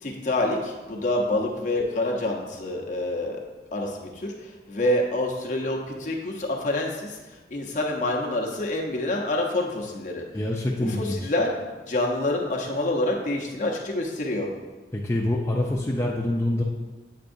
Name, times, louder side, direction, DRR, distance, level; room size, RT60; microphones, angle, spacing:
voice 1, 0.0-3.4 3.7-4.3 4.7-7.2 7.5-10.2 10.8-11.5 11.9-14.5, left 1 dB, 45° left, -1 dB, 0.8 m, -27 dB
voice 2, 10.3-11.3 14.9-16.6, left 1 dB, 15° left, -3 dB, 0.4 m, -26 dB
8.2 x 4.6 x 2.6 m, 1.2 s
head